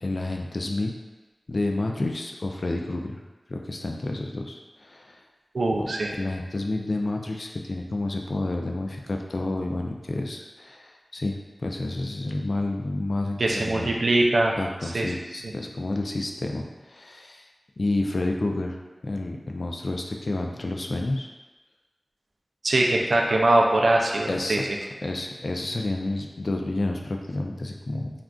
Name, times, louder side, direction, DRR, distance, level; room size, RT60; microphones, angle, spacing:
voice 1, 0.0-0.9 1.5-3.2 3.5-5.1 6.2-13.9 14.6-17.4 17.8-18.8 19.0-21.3 24.3-24.7 25.0-28.1, left 2 dB, 60° left, 2 dB, 0.3 m, -30 dB
voice 2, 5.5-6.1 13.4-14.6 14.8-15.1 15.4-15.5 22.6-24.6, right 2 dB, 85° right, 0 dB, 0.3 m, -22 dB
3.6 x 2.4 x 2.2 m, 1.2 s
wide cardioid pair, 65°, 0 cm